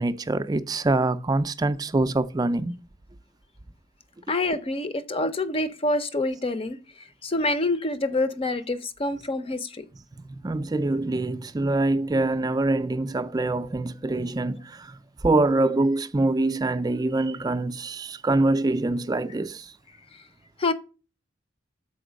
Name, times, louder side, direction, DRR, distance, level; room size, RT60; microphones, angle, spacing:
voice 1, 0.0-2.8 10.4-15.0 15.2-19.7, right 2 dB, 20° right, 0.4 m, -24 dB
voice 2, 4.3-6.8 7.2-9.9 20.6-20.7, left 2 dB, 30° left, 0.5 m, -26 dB
7.0 x 4.5 x 5.0 m
head